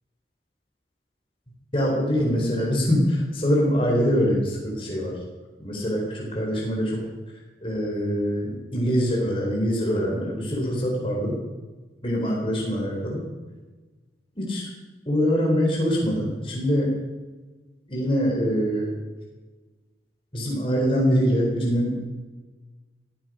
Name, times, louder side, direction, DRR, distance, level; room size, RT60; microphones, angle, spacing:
voice 1, 1.7-5.1 5.6-7.0 7.6-11.3 12.0-13.2 14.4-14.7 15.1-16.9 17.9-18.9 20.3-21.9, equal, 30° left, -3 dB, 4.4 m, -24 dB
17.5 x 14.0 x 5.2 m, 1.3 s
head